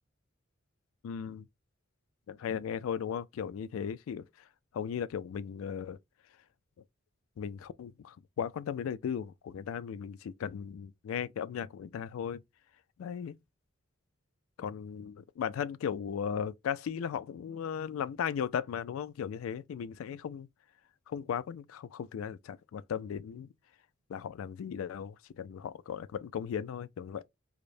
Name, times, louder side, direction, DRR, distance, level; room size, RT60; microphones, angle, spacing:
voice 1, 1.0-1.5 2.3-4.2 4.7-6.0 7.4-12.4 13.0-13.3 14.6-20.5 21.1-23.5 24.1-27.2, left 8 dB, 90° left, 0.3 m, -36 dB
4.9 x 2.0 x 2.6 m
head